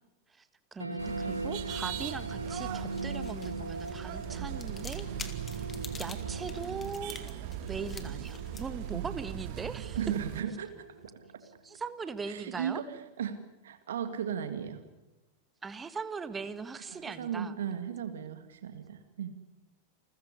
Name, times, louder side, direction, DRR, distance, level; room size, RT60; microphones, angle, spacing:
voice 1, 0.3-5.1 5.4-5.6 6.0-10.0 11.6-12.8 15.6-17.6, right 5 dB, 15° right, 13 dB, 1.5 m, -40 dB
sound 1, 0.8-11.8, right 2 dB, 85° right, 2.2 m, -41 dB
sound 2, 1.0-10.4, right 12 dB, 45° right, 1.6 m, -39 dB
sound 3, 2.6-11.1, left 5 dB, 20° left, 2.2 m, -50 dB
voice 2, 10.0-10.9 12.3-13.4 13.6-14.8 16.9-19.3, right 8 dB, 60° right, 9 dB, 2.1 m, -36 dB
29.0 x 15.0 x 9.9 m, 0.98 s
figure-of-eight pair, 90°, 0 cm